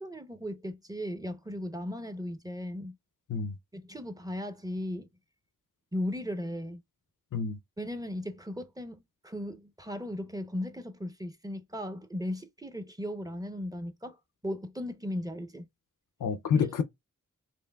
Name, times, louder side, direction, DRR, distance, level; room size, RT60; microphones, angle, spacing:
voice 1, 0.0-2.9 3.7-5.1 5.9-6.8 7.8-14.2 14.4-15.7 16.5-16.8, left 1 dB, 10° right, 0.7 m, -37 dB
voice 2, 16.2-16.8, left 6 dB, 70° left, 0.5 m, -28 dB
4.3 x 3.0 x 2.3 m
wide cardioid pair, 65°, 32 cm